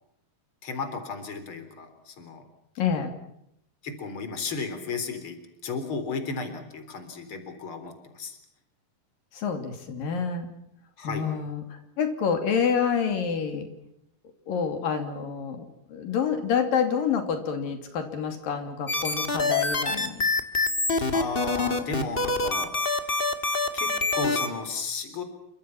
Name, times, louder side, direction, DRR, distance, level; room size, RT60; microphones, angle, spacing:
voice 1, 0.6-2.4 3.8-8.4 11.0-11.2 21.1-23.1 23.7-25.2, left 4 dB, 35° left, 8 dB, 4.5 m, -34 dB
voice 2, 2.8-3.1 9.3-10.5 11.0-13.7 14.5-20.2, left 6 dB, 80° left, 6 dB, 4.5 m, -28 dB
sound 1, 18.9-24.5, left 3 dB, 20° left, 1.6 m, -25 dB
29.5 x 25.5 x 5.9 m, 0.77 s
omnidirectional pair, 3.9 m